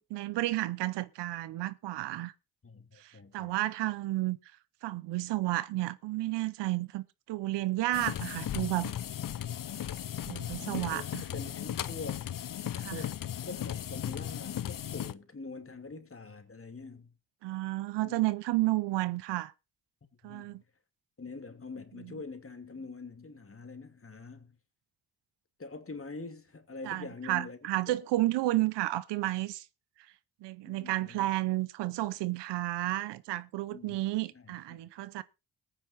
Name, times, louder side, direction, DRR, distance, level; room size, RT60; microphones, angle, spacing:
voice 1, 0.0-2.3 3.0-4.4 4.8-8.9 10.3-11.2 12.8-13.0 17.4-19.5 20.2-20.6 22.0-22.1 26.8-29.7 30.4-35.2, right 17 dB, 85° right, 0.7 m, -32 dB
voice 2, 2.6-3.5 10.6-12.3 12.9-17.1 18.0-18.2 20.2-20.7 21.2-24.6 25.6-27.6 27.9-28.0 30.6-31.3 33.7-34.0 34.3-34.8, left 3 dB, 30° left, 2.7 m, -45 dB
sound 1, 7.9-15.1, left 10 dB, 50° left, 0.7 m, -36 dB
21.0 x 9.1 x 2.6 m
supercardioid pair, 45°, 41 cm